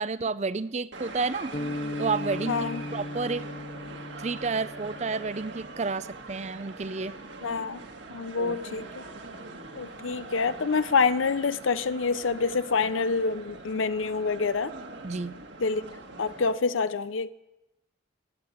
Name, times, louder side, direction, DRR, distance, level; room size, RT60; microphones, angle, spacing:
voice 1, 0.0-1.5 2.0-3.5 4.2-7.1 8.4-8.6 15.0-15.3, right 4 dB, 35° right, 15 dB, 0.5 m, -30 dB
sound 1, 0.9-16.5, right 3 dB, 65° right, 1.6 m, -42 dB
sound 2, 1.5-5.8, left 2 dB, 45° left, 1.0 m, -37 dB
voice 2, 2.5-2.8 7.4-7.8 8.1-9.0 9.8-14.7 15.6-15.8 16.2-17.3, left 4 dB, 80° left, 15 dB, 0.7 m, -27 dB
17.0 x 9.6 x 8.5 m, 0.97 s
head